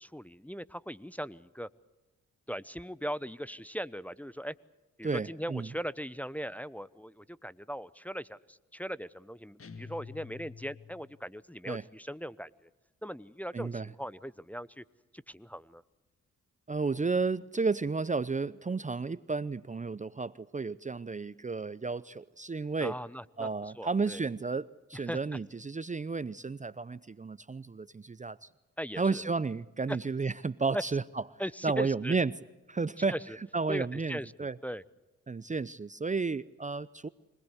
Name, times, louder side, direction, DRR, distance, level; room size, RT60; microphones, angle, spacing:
voice 1, 0.0-1.7 2.5-4.5 5.0-12.7 13.0-14.8 15.1-15.8 22.8-23.5 23.8-24.2 25.1-25.4 28.8-29.2 30.7-30.8 31.4-32.2 33.1-33.2 33.7-34.8, equal, 5° left, 16 dB, 0.9 m, -39 dB
voice 2, 5.0-5.7 11.7-11.8 13.5-13.9 16.7-22.9 23.4-28.5 29.0-32.3 32.7-33.2 33.5-34.6 35.3-37.1, right 4 dB, 25° right, 17 dB, 0.7 m, -32 dB
sound 1, 9.6-11.3, left 5 dB, 45° left, 1.7 m, -48 dB
25.5 x 19.5 x 8.1 m, 1.1 s
supercardioid pair, 45°, 31 cm